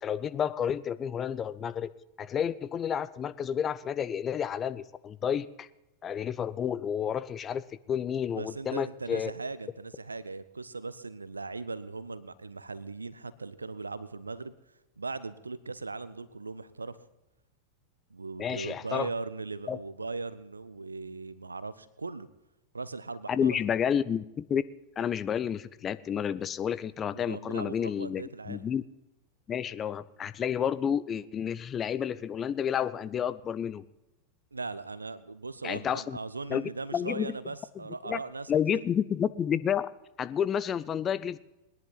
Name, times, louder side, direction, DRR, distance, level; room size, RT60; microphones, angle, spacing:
voice 1, 0.0-1.9 2.2-5.7 6.0-9.3 18.4-19.1 19.7-19.8 23.3-24.6 25.0-28.8 29.5-33.8 35.6-36.2 36.5-37.3 38.0-38.2 38.5-39.9 40.2-41.4, left 8 dB, 25° left, 15 dB, 0.6 m, -30 dB
voice 2, 8.3-14.5 15.0-17.0 18.1-22.3 22.7-23.6 27.1-28.6 34.5-38.8, right 3 dB, 80° right, 15 dB, 0.7 m, -39 dB
20.5 x 10.5 x 4.0 m, 0.93 s
figure-of-eight pair, 90°, 0 cm